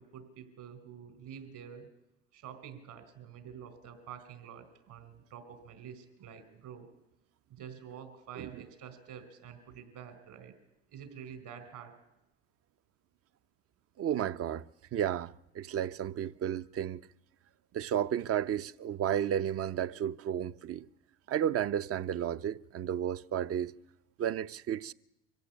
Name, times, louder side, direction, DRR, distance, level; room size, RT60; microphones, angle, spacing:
voice 1, 0.0-1.9 2.3-6.9 7.5-10.5 10.9-11.9, right 8 dB, 60° right, 4.7 m, -48 dB
voice 2, 14.0-14.6 14.9-17.0 17.7-20.9 21.3-23.7 24.2-24.9, right 10 dB, 40° right, 0.8 m, -32 dB
24.0 x 16.0 x 8.6 m
supercardioid pair, 90°, 34 cm